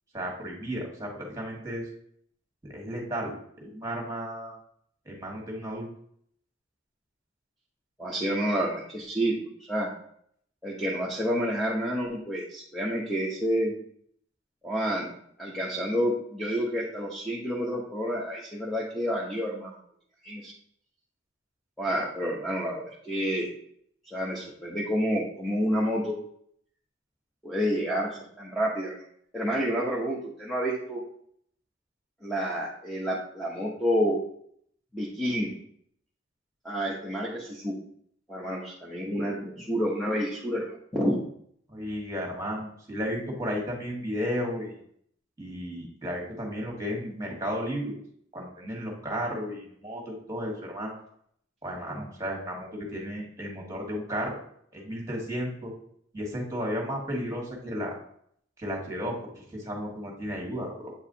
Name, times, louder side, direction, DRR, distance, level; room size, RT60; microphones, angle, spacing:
voice 1, 0.1-1.9 2.6-3.3 3.6-4.6 5.1-5.9 41.7-44.8 45.4-47.9 48.3-51.0 51.6-54.4 54.7-55.7 56.1-58.0 58.6-60.9, equal, 15° right, -1 dB, 1.8 m, -33 dB
voice 2, 8.0-9.3 9.7-9.9 10.6-13.7 14.6-15.1 15.4-19.8 20.2-20.5 21.8-23.5 24.0-26.2 27.4-29.0 29.3-31.0 32.2-34.2 34.9-35.5 36.6-37.7 38.3-41.2, equal, ahead, -5 dB, 0.9 m, -29 dB
8.1 x 4.7 x 2.8 m, 0.66 s
head